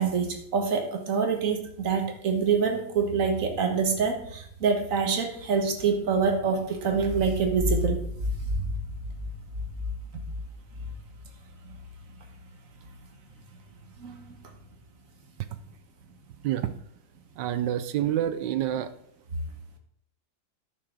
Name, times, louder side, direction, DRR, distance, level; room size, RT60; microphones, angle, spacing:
voice 1, 0.0-8.0 8.6-8.7 14.0-14.3, right 5 dB, 45° right, 5 dB, 1.4 m, -26 dB
voice 2, 17.4-18.9, right 11 dB, 70° right, 12 dB, 1.1 m, -27 dB
10.5 x 6.5 x 3.8 m, 0.68 s
omnidirectional pair, 2.3 m